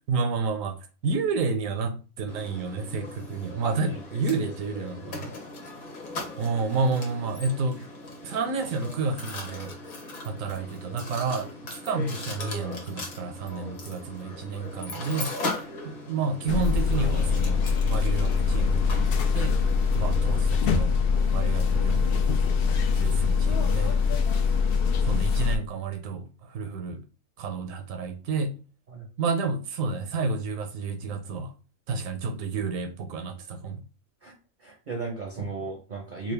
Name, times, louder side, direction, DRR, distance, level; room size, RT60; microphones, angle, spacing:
voice 1, 0.1-0.8 1.0-5.3 6.4-7.8 8.2-9.7 10.2-19.1 19.3-19.6 19.9-20.9 21.3-22.3 23.0-24.0 25.0-27.0 27.4-28.6 29.2-31.5 31.9-33.8 35.4-35.5, right 4 dB, 75° right, 1.0 m, -30 dB
Mechanisms, 2.3-20.4, left 2 dB, 85° left, 1.4 m, -39 dB
sound 1, 16.5-25.6, left 5 dB, 70° left, 0.5 m, -23 dB
voice 2, 20.0-20.4 22.0-22.1 28.9-29.1 34.2-34.3 34.6-36.3, right 3 dB, 50° right, 0.6 m, -36 dB
3.7 x 2.4 x 3.2 m
omnidirectional pair, 1.4 m